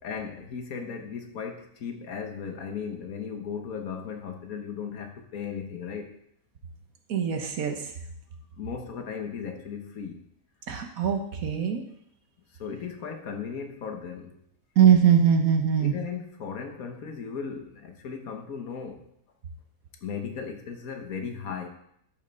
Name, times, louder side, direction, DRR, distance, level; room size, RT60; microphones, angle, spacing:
voice 1, 0.0-6.1 8.5-10.2 12.6-14.4 15.8-19.1 20.0-21.7, left 6 dB, 85° left, 4 dB, 1.6 m, -36 dB
voice 2, 7.1-7.9 10.7-11.8 14.8-15.9, right 8 dB, 80° right, 4 dB, 1.6 m, -22 dB
12.5 x 5.4 x 4.0 m, 0.72 s
omnidirectional pair, 1.5 m